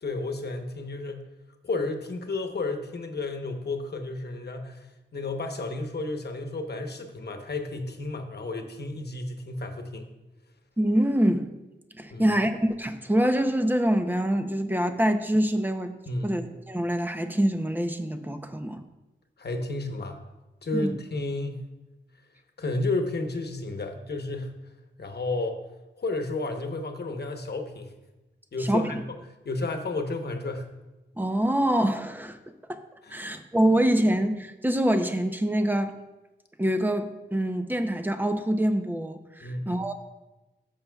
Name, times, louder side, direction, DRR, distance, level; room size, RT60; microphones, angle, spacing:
voice 1, 0.0-1.3 1.6-4.9 5.1-10.1 12.1-12.3 16.1-16.4 19.4-20.2 20.6-21.7 22.6-24.5 25.0-25.6 26.0-27.9 28.5-29.1 29.4-30.7 33.0-33.3 39.4-39.9, left 2 dB, 60° left, 5 dB, 1.0 m, -32 dB
voice 2, 10.8-11.5 12.0-15.9 16.2-16.4 16.7-18.8 20.7-21.0 28.6-28.9 31.2-32.4 32.7-32.8 33.1-35.9 36.6-39.9, right 1 dB, 10° right, 7 dB, 0.6 m, -25 dB
14.5 x 7.0 x 2.3 m, 1.0 s
wide cardioid pair, 110°, 19 cm